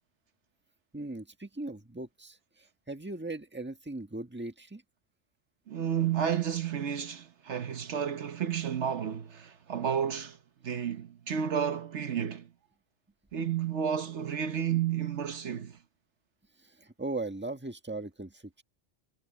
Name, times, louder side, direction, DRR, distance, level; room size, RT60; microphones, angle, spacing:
voice 1, 0.9-4.8 16.6-18.6, right 2 dB, 10° right, 1.5 m, -39 dB
voice 2, 5.7-10.4 10.6-12.5 13.3-15.8, right 8 dB, 70° right, 1.3 m, -31 dB
omnidirectional pair, 1.2 m